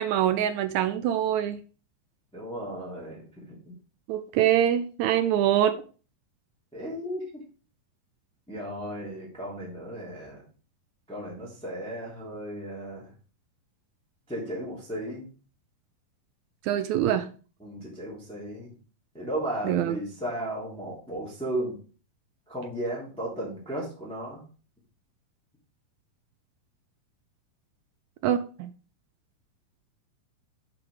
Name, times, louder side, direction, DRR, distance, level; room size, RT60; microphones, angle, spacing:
voice 1, 0.0-1.6 4.1-5.8 16.6-17.3 19.6-20.0 28.2-28.7, right 11 dB, 85° right, 9 dB, 1.6 m, -24 dB
voice 2, 2.3-3.7 6.7-7.4 8.5-10.4 11.1-13.1 14.3-15.3 17.6-18.7 19.1-21.8 22.5-24.4, right 1 dB, ahead, -5 dB, 2.6 m, -35 dB
10.5 x 5.0 x 4.9 m, 0.37 s
omnidirectional pair, 4.1 m